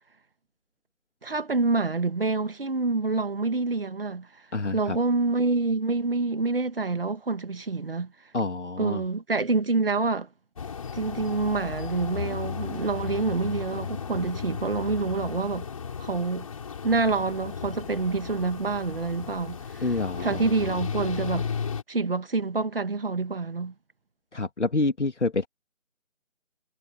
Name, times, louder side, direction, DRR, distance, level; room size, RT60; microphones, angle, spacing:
voice 1, 1.2-4.3 4.7-8.1 8.8-10.3 10.9-15.7 16.0-16.5 16.8-19.9 20.2-21.5 21.9-23.7, right 3 dB, 45° right, 2.1 m, -27 dB
voice 2, 4.5-5.0 8.3-9.0 19.8-20.5 24.3-25.5, left 3 dB, 60° left, 2.5 m, -27 dB
sound 1, 10.6-21.8, left 6 dB, 25° left, 6.2 m, -35 dB
figure-of-eight pair, 160°, 40 cm